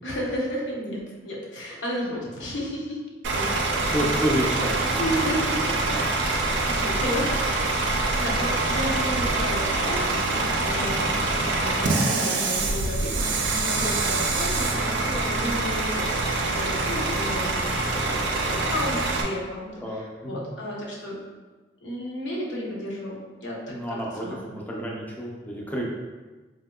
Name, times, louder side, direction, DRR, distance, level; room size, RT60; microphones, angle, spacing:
voice 1, 0.0-3.0 3.3-4.1 5.0-6.0 6.7-7.3 7.7-21.2 21.8-24.4, equal, 75° left, -3 dB, 0.8 m, -33 dB
Bus / Idling, 3.2-19.2, right 2 dB, 75° right, 0.4 m, -25 dB
voice 2, 3.8-5.0 10.7-11.0 19.8-20.4 23.7-25.8, equal, 10° left, -3 dB, 0.5 m, -30 dB
3.5 x 2.7 x 2.3 m, 1.2 s
head